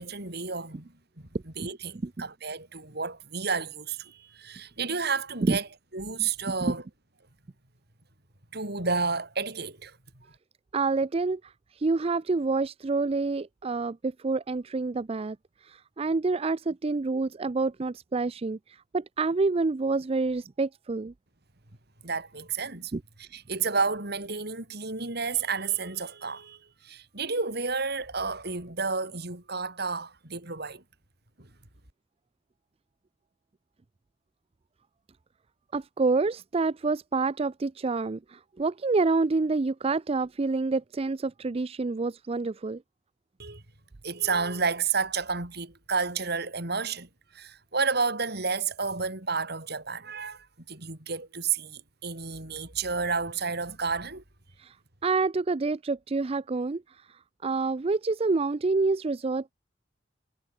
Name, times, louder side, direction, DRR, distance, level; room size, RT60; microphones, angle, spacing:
voice 1, 0.0-5.7 5.9-6.8 8.5-10.0 22.0-22.9 23.2-30.8 31.4-31.5 43.4-43.6 44.0-54.2, right 4 dB, 60° right, 5.1 m, -31 dB
voice 2, 10.7-21.1 22.9-23.0 35.7-42.8 54.6-54.8 55.0-59.5, right 3 dB, 30° right, 0.5 m, -28 dB
head